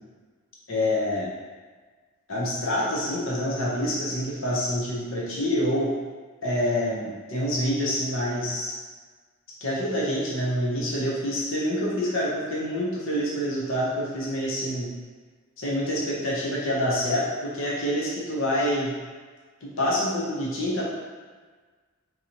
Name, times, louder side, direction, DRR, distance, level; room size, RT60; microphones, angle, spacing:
voice 1, 0.7-1.3 2.3-5.9 6.4-8.7 9.6-14.9 15.6-18.9 19.6-20.8, equal, 65° left, -5 dB, 0.7 m, -27 dB
3.8 x 2.7 x 2.9 m, 1.5 s
head